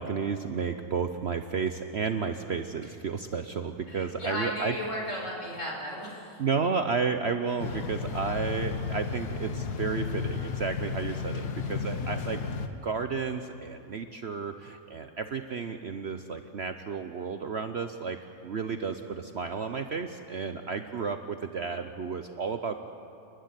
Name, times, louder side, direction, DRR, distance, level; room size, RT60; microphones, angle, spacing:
voice 1, 0.0-4.8 6.4-9.5 9.8-12.4 12.8-14.5 14.9-18.2 18.4-18.9 19.3-21.2 21.5-22.7, right 5 dB, 50° right, 7 dB, 0.9 m, -32 dB
voice 2, 3.9-6.4, equal, 50° left, -1 dB, 5.1 m, -35 dB
sound 1, 7.6-12.7, left 5 dB, 85° left, 1.7 m, -33 dB
29.0 x 11.5 x 9.7 m, 2.8 s
omnidirectional pair, 1.6 m